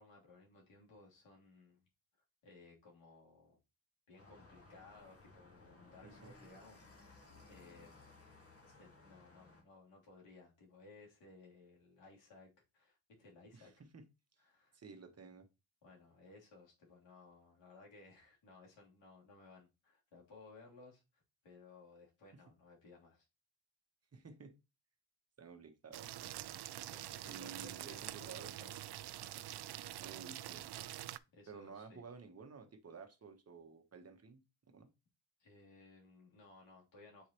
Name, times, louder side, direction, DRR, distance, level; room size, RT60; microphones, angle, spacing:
voice 1, 0.0-1.8 2.4-3.6 4.1-8.1 8.7-13.7 14.4-14.8 15.8-23.2 26.9-29.0 31.3-32.0 35.4-37.3, left 3 dB, 85° left, 3.3 m, -60 dB
sound 1, 4.2-9.6, left 3 dB, 30° left, 1.9 m, -60 dB
voice 2, 13.5-14.0 14.7-15.5 24.1-24.5 25.4-26.3 27.3-28.6 30.0-30.7 31.5-34.4 34.7-34.9, right 5 dB, 35° right, 1.1 m, -53 dB
sound 2, 25.9-31.2, right 14 dB, 65° right, 0.5 m, -46 dB
7.3 x 4.7 x 3.0 m
cardioid pair, 120°, 43 cm